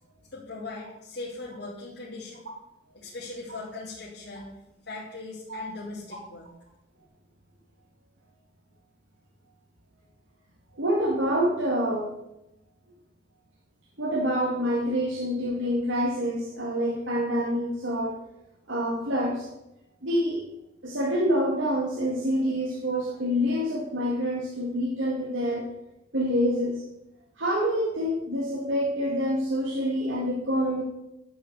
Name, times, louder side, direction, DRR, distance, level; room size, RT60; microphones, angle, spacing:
voice 1, 0.3-2.4 2.9-4.5 4.8-6.5, left 3 dB, 55° left, -8 dB, 2.9 m, -39 dB
voice 2, 10.8-12.1 14.0-18.2 18.7-19.5 20.0-20.4 20.8-25.7 26.1-26.8 27.4-30.8, equal, 75° right, -2 dB, 2.1 m, -26 dB
11.5 x 6.8 x 8.2 m, 0.91 s
head